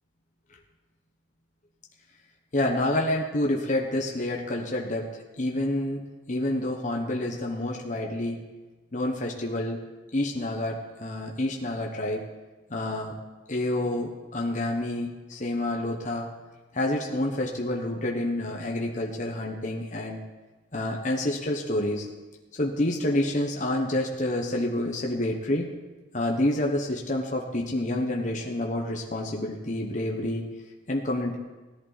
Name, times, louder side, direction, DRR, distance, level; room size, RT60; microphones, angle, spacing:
voice 1, 2.5-8.4 8.9-9.8 10.1-12.2 12.7-13.2 13.5-16.3 16.7-20.2 20.7-22.1 22.5-25.7 26.1-30.4 30.9-31.4, left 1 dB, 40° left, 0 dB, 1.2 m, -28 dB
17.5 x 11.0 x 4.2 m, 1.2 s
head